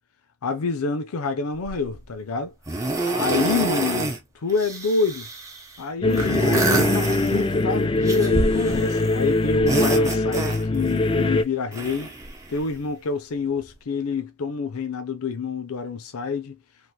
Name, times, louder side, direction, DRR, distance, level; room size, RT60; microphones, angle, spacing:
voice 1, 0.4-2.5 3.2-4.2 4.4-5.3 5.8-12.1 12.5-16.6, left 4 dB, 80° left, 0.5 m, -27 dB
sound 1, 1.7-2.0 2.7-4.2 4.5-5.6 6.1-7.6 8.1-9.1 9.5-10.9 11.7-12.8 13.6-13.7, right 2 dB, 15° right, 0.7 m, -27 dB
sound 2, 6.0-11.4, left 2 dB, 25° left, 0.4 m, -22 dB
3.3 x 2.9 x 2.3 m
head